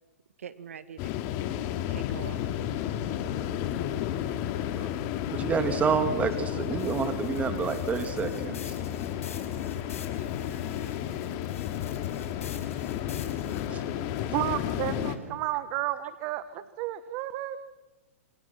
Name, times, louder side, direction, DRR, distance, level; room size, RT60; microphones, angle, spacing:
voice 1, 0.4-1.1 1.9-2.4 4.4-4.5 10.2-10.3 10.8-11.5 11.8-12.1 14.3-14.4, right 7 dB, 85° right, 12 dB, 1.8 m, -45 dB
sound 1, 1.0-15.2, left 10 dB, 40° left, 2.5 m, -32 dB
voice 2, 5.3-8.7 13.7-13.8, right 6 dB, 20° right, 8 dB, 2.6 m, -29 dB
sound 2, 6.8-13.7, left 7 dB, 80° left, 4.9 m, -47 dB
voice 3, 14.3-17.6, right 15 dB, 40° right, 12 dB, 1.3 m, -32 dB
28.0 x 28.0 x 6.0 m, 1.1 s
hypercardioid pair, 130°, 7 cm